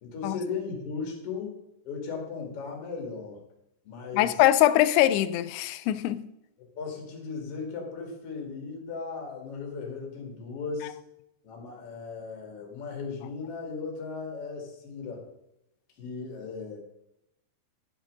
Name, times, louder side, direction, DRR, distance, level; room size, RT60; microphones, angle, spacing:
voice 1, 0.0-1.6 1.8-3.4 3.8-4.4 6.6-11.0 11.4-15.3 16.0-16.8, left 4 dB, 45° left, 2.6 m, -37 dB
voice 2, 4.2-6.3, left 14 dB, 85° left, 2.6 m, -22 dB
11.0 x 7.3 x 3.7 m
omnidirectional pair, 4.7 m